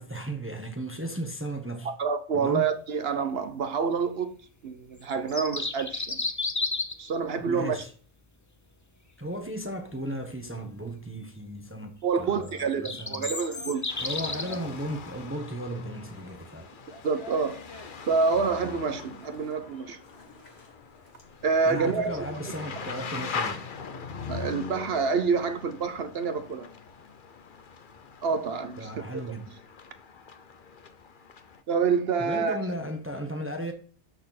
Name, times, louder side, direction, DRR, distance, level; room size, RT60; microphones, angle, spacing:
voice 1, 0.0-1.9 2.3-2.7 7.4-7.9 9.2-13.3 14.0-16.7 21.6-23.6 28.8-29.6 32.2-33.7, right 1 dB, 10° right, 1.1 m, -35 dB
voice 2, 2.0-4.4 4.6-6.2 7.0-7.8 12.0-14.0 17.0-17.6 18.1-20.0 21.4-22.2 24.3-26.7 28.2-28.9 31.7-32.6, right 5 dB, 65° right, 0.9 m, -27 dB
sound 1, 5.1-7.1 12.5-14.6, left 3 dB, 20° left, 0.6 m, -32 dB
sound 2, 13.3-21.8, equal, 65° left, 2.5 m, -52 dB
sound 3, 13.9-31.6, left 5 dB, 50° left, 1.0 m, -41 dB
12.5 x 4.3 x 4.2 m
omnidirectional pair, 1.1 m